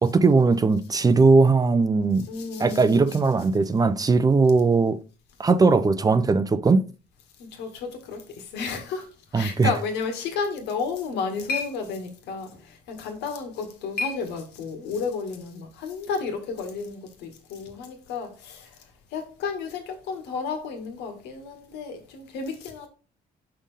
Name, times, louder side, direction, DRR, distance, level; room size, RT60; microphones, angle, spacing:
voice 1, 0.0-2.3 2.6-5.0 5.4-6.8 9.3-9.7, right 4 dB, 20° right, 0.5 m, -19 dB
voice 2, 2.3-3.2 7.4-18.7 19.1-22.9, left 5 dB, 85° left, 1.8 m, -32 dB
sound 1, 10.7-15.0, left 3 dB, 65° left, 1.6 m, -37 dB
6.9 x 5.6 x 3.4 m
cardioid pair, 110°, 17 cm